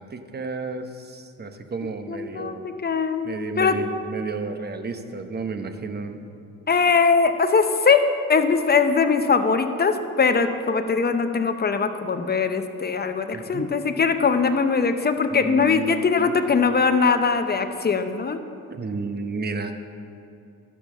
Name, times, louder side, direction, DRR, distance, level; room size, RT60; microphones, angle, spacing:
voice 1, 0.0-2.6 3.2-6.2 13.3-13.7 15.3-16.3 18.7-19.7, right 4 dB, 30° right, 7 dB, 1.0 m, -32 dB
voice 2, 2.1-3.3 3.6-3.8 6.7-8.0 8.3-18.4, left 5 dB, 30° left, 8 dB, 0.7 m, -21 dB
12.0 x 7.1 x 7.1 m, 2.6 s
cardioid pair, 90°, 31 cm